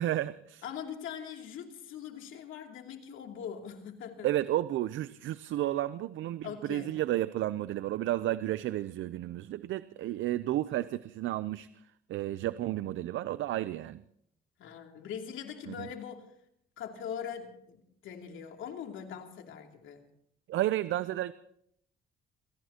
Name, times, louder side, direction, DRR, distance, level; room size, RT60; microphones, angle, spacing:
voice 1, 0.0-0.6 4.2-11.7 12.1-14.0 15.7-15.9 20.5-21.3, right 14 dB, 75° right, 15 dB, 0.6 m, -32 dB
voice 2, 0.6-4.3 6.4-7.0 14.6-16.3 16.8-20.1, left 8 dB, 80° left, 3 dB, 2.8 m, -42 dB
28.0 x 17.5 x 2.9 m, 0.70 s
cardioid pair, 90°, 20 cm